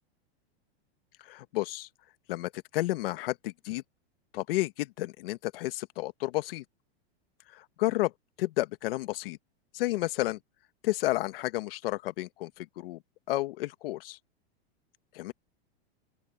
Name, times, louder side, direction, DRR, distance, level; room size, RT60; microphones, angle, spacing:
voice 1, 1.2-1.9 2.3-3.8 4.3-6.6 7.5-8.1 8.4-9.4 9.7-10.4 10.8-13.0 13.3-14.2 15.1-15.3, left 18 dB, 60° left, 1.5 m, -31 dB
open air
supercardioid pair, 155°, 32 cm